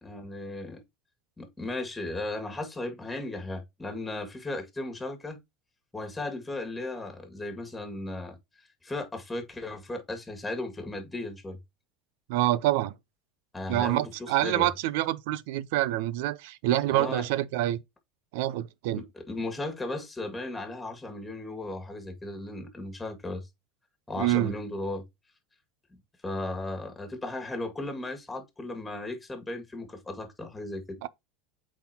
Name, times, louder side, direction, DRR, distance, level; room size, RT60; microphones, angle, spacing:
voice 1, 0.0-0.8 1.4-5.4 5.9-8.4 8.8-11.6 13.5-14.7 16.9-17.3 18.9-23.5 24.1-25.0 26.2-31.0, left 2 dB, 10° left, 2.0 m, -36 dB
voice 2, 12.3-12.9 13.7-17.8 18.3-19.0 24.2-24.5 31.0-31.1, right 15 dB, 70° right, 0.4 m, -26 dB
8.2 x 4.1 x 2.8 m
hypercardioid pair, 95°, 0 cm